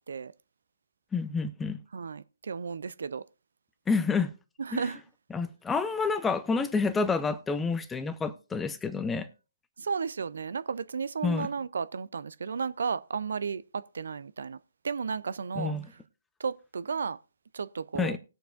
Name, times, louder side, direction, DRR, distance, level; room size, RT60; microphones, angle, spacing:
voice 1, 1.1-1.8 3.9-4.3 4.7-4.8 5.3-9.3 11.2-11.5 15.6-15.8 18.0-18.2, left 4 dB, 10° left, 0.7 m, -28 dB
voice 2, 1.9-3.2 4.6-5.0 9.8-14.6 14.8-15.7 16.4-17.2 17.5-18.2, right 5 dB, 70° right, 0.4 m, -33 dB
19.5 x 6.8 x 2.5 m
figure-of-eight pair, 135°, 0 cm